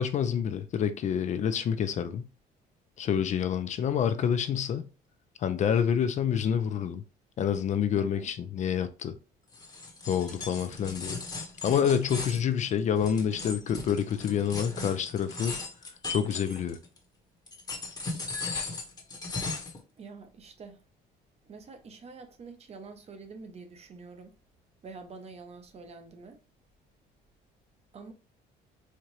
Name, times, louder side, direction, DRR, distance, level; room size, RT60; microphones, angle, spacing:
voice 1, 0.0-2.2 3.0-4.9 5.4-7.0 7.4-9.2 10.1-11.2 11.6-15.6 16.1-16.8, left 8 dB, 45° left, 0.4 m, -28 dB
voice 2, 7.9-8.3 20.0-20.8 21.4-24.3 24.8-26.4 27.9-28.1, right 4 dB, 40° right, 0.8 m, -46 dB
sound 1, 9.5-17.0 17.5-19.8, left 3 dB, 25° left, 1.0 m, -37 dB
4.3 x 2.5 x 3.1 m
cardioid pair, 110°, 17 cm